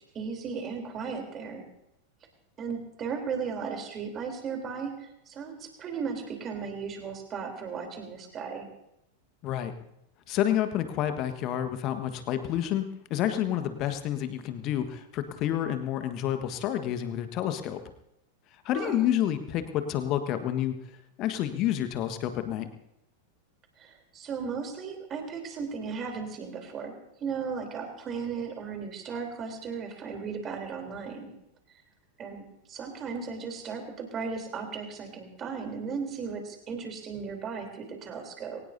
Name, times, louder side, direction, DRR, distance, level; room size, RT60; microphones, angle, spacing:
voice 1, 0.1-1.7 2.6-8.7 18.7-19.0 23.8-31.3 32.2-32.4 32.7-38.6, right 5 dB, 30° right, 3 dB, 3.6 m, -36 dB
voice 2, 9.4-9.7 10.3-12.8 13.1-17.8 18.6-20.7 21.2-22.7, left 11 dB, 40° left, 9 dB, 1.5 m, -29 dB
22.5 x 18.5 x 2.8 m, 0.82 s
figure-of-eight pair, 90°, 0 cm